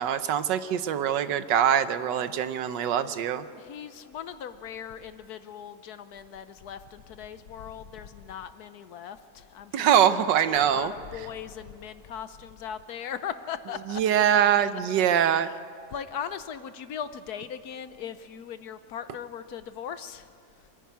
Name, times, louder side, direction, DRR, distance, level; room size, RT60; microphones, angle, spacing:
voice 1, 0.0-3.4 9.7-10.9 13.9-15.5, right 9 dB, 80° right, 12 dB, 1.5 m, -23 dB
voice 2, 3.6-14.0 14.3-14.4 15.3-15.6 15.9-20.3, left 8 dB, 65° left, 11 dB, 1.2 m, -39 dB
26.5 x 10.5 x 9.6 m, 2.6 s
omnidirectional pair, 1.9 m